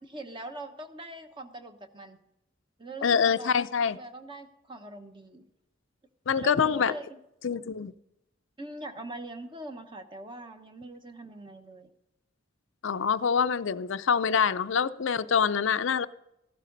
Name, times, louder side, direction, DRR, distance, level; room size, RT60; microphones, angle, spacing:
voice 1, 0.0-2.2 2.8-3.5 3.9-5.4 6.3-7.2 8.6-11.9, right 1 dB, 25° right, 1.0 m, -42 dB
voice 2, 3.0-4.0 6.3-6.9 7.4-7.9 12.8-16.1, left 6 dB, 65° left, 0.5 m, -25 dB
14.5 x 12.5 x 4.0 m
head